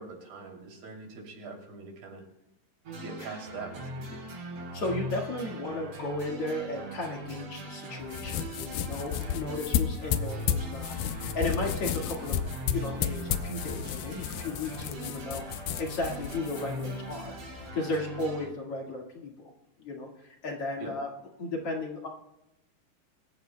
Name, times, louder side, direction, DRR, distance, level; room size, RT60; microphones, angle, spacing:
voice 1, 0.0-2.2 2.9-4.2 20.8-20.9, right 4 dB, 90° right, 1 dB, 4.8 m, -43 dB
sound 1, 2.9-18.5, right 1 dB, 50° right, 3.6 m, -41 dB
voice 2, 4.7-12.4 12.7-19.5 19.8-21.1 21.4-22.1, left 2 dB, 50° left, 0 dB, 2.5 m, -35 dB
sound 2, 8.0-17.7, left 9 dB, 80° left, 2.3 m, -33 dB
25.0 x 14.0 x 2.2 m, 0.90 s
omnidirectional pair, 4.0 m